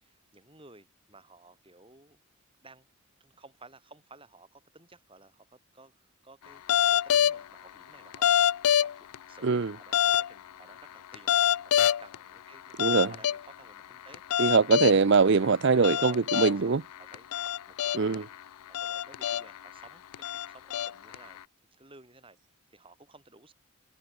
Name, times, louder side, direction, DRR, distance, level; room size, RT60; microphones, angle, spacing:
voice 1, 0.0-2.2 2.6-2.9 3.2-11.3 11.6-14.2 15.8-21.4 21.7-22.4 22.7-23.5, right 2 dB, 25° right, 6.0 m, -55 dB
sound 1, 6.7-7.4 8.1-9.2 9.9-10.3 11.1-12.2 12.8-13.4 14.1-15.2 15.8-16.6 17.1-18.2 18.7-19.6 20.1-21.2, left 10 dB, 90° left, 0.4 m, -25 dB
voice 2, 12.8-13.1 14.4-16.8 17.9-18.2, right 4 dB, 55° right, 0.5 m, -22 dB
head